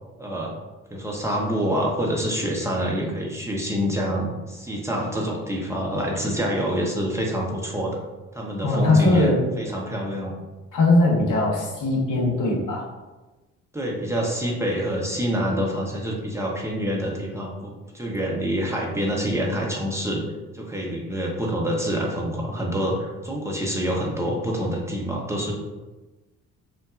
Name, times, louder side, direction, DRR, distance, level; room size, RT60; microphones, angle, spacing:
voice 1, 0.2-0.5 0.9-8.0 8.3-9.3 9.6-10.3 13.7-20.2 20.5-25.5, equal, 5° right, -3 dB, 0.8 m, -26 dB
voice 2, 8.6-9.5 10.7-12.9, left 2 dB, 45° left, -2 dB, 1.2 m, -20 dB
6.2 x 2.2 x 2.5 m, 1.2 s
figure-of-eight pair, 45°, 45 cm